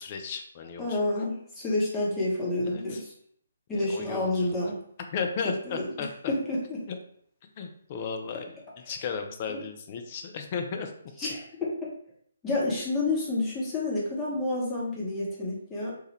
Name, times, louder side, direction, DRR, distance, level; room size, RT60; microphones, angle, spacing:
voice 1, 0.0-1.2 2.7-3.0 3.7-4.6 5.1-6.3 6.9-7.0 7.6-8.6 8.9-10.9, left 5 dB, 35° left, 5 dB, 0.4 m, -35 dB
voice 2, 0.8-3.1 3.7-4.8 5.7-5.8 6.3-6.8 9.5-9.6 11.2-11.9 12.4-15.9, left 2 dB, 15° left, -6 dB, 0.8 m, -29 dB
3.0 x 2.2 x 3.1 m, 0.65 s
figure-of-eight pair, 140°, 0 cm